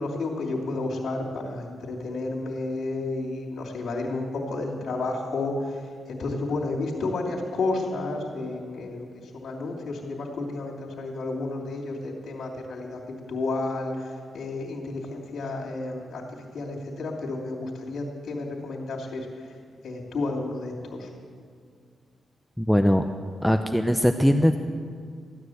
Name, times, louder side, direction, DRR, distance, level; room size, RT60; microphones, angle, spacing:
voice 1, 0.0-5.8 6.1-9.1 9.4-16.2 16.5-19.3 19.8-21.1, left 2 dB, 75° left, -1 dB, 2.9 m, -31 dB
voice 2, 22.6-23.1 23.4-24.6, equal, ahead, 6 dB, 0.7 m, -20 dB
15.0 x 9.6 x 7.9 m, 2.1 s
cardioid pair, 70°, 0 cm